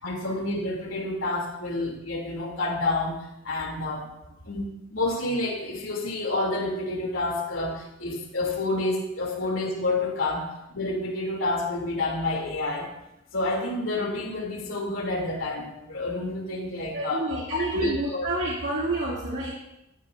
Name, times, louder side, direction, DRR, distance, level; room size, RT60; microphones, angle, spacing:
voice 1, 0.0-3.2 3.4-4.1 4.5-12.9 13.3-17.2 17.5-18.3, left 2 dB, 80° left, -1 dB, 2.8 m, -29 dB
voice 2, 16.9-19.5, right 2 dB, 65° right, -6 dB, 2.4 m, -29 dB
16.5 x 13.5 x 2.6 m, 0.85 s
head